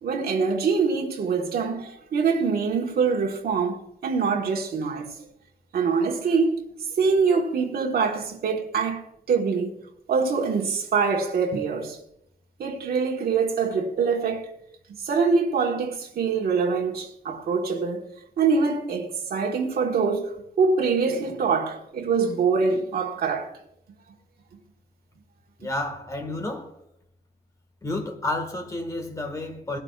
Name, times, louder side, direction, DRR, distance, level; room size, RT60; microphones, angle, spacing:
voice 1, 0.0-5.1 5.7-6.7 7.0-9.0 9.3-9.8 10.1-12.0 12.6-14.5 15.0-18.1 18.4-23.6, right 5 dB, 65° right, 1.5 m, -24 dB
voice 2, 25.6-26.7 27.8-29.8, left 2 dB, 20° left, 1.7 m, -30 dB
18.0 x 12.0 x 2.4 m
wide cardioid pair, 175°, 17 cm